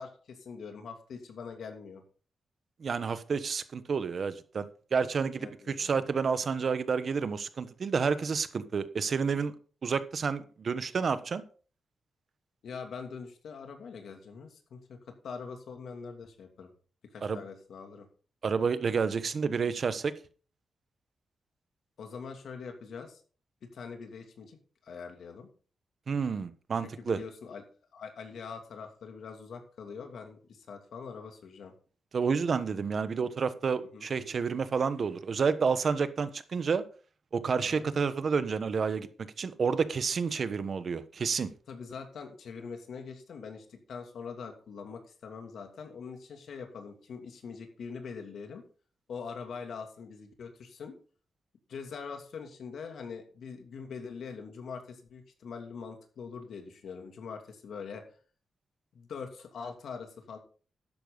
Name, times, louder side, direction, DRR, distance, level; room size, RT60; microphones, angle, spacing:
voice 1, 0.0-2.0 5.4-6.0 12.6-16.7 17.1-18.1 22.0-23.2 23.7-24.6 24.8-25.5 26.8-27.6 27.9-31.7 33.8-34.4 37.6-37.9 41.7-48.6 49.1-51.0 51.7-58.0 58.9-60.4, left 5 dB, 75° left, 4 dB, 2.6 m, -43 dB
voice 2, 2.8-9.5 9.8-11.4 17.2-17.4 18.4-20.1 26.1-27.2 32.1-36.8 37.3-39.1 39.4-41.5, right 5 dB, 50° right, 12 dB, 1.1 m, -30 dB
12.5 x 10.0 x 4.0 m, 0.40 s
wide cardioid pair, 115°, 0 cm